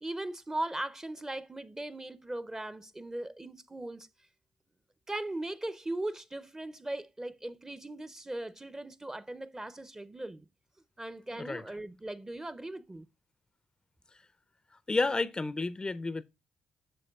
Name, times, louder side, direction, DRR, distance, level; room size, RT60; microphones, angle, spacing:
voice 1, 0.0-4.1 5.1-10.5 11.0-13.1, right 1 dB, 20° right, 0.6 m, -38 dB
voice 2, 14.9-16.2, left 3 dB, 25° left, 0.4 m, -31 dB
7.7 x 6.3 x 2.3 m
hypercardioid pair, 45°, 3 cm